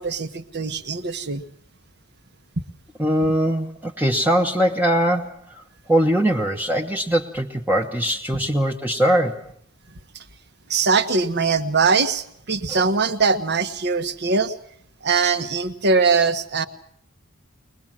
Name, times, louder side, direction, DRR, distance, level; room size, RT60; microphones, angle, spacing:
voice 1, 0.0-1.4 10.7-14.5 15.0-16.7, right 4 dB, 50° right, 9 dB, 1.3 m, -21 dB
voice 2, 3.0-5.6 5.9-9.5 12.7-12.8, equal, 10° right, 1 dB, 1.1 m, -21 dB
22.5 x 21.0 x 7.5 m, 0.66 s
head